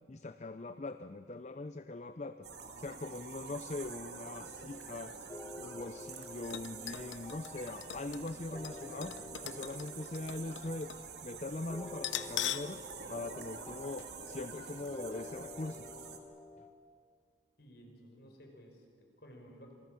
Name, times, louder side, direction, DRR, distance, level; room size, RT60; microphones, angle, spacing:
voice 1, 0.1-2.5 2.8-5.1 5.6-9.2 9.4-10.9 11.2-12.8 13.1-15.8, left 2 dB, 40° left, 11 dB, 0.6 m, -42 dB
sound 1, 2.4-16.2, right 5 dB, 65° right, 2.2 m, -47 dB
sound 2, 5.3-16.7, left 2 dB, 15° left, 1.2 m, -51 dB
sound 3, 6.4-11.1 11.4-11.5 12.0-12.8 13.1-13.2 14.0-14.2 14.5-14.6, left 11 dB, 85° left, 0.8 m, -42 dB
voice 2, 17.6-19.7, equal, 60° left, 2 dB, 5.1 m, -55 dB
27.0 x 19.5 x 7.6 m, 2.2 s
head